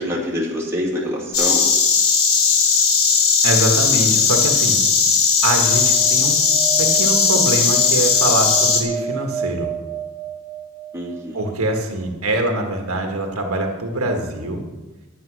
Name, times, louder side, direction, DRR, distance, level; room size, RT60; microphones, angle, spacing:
voice 1, 0.0-1.7 10.9-11.4, left 1 dB, 10° right, -4 dB, 2.4 m, -25 dB
Insect, 1.3-8.8, left 5 dB, 65° left, 1.5 m, -17 dB
voice 2, 3.4-4.8 5.4-6.4 6.8-9.7 11.3-14.6, right 1 dB, 75° right, 3 dB, 1.5 m, -23 dB
sound 1, 5.4-11.6 13.9-14.0 14.1-14.2, right 6 dB, 20° left, 2.8 m, -32 dB
9.7 x 9.2 x 6.2 m, 1.2 s
head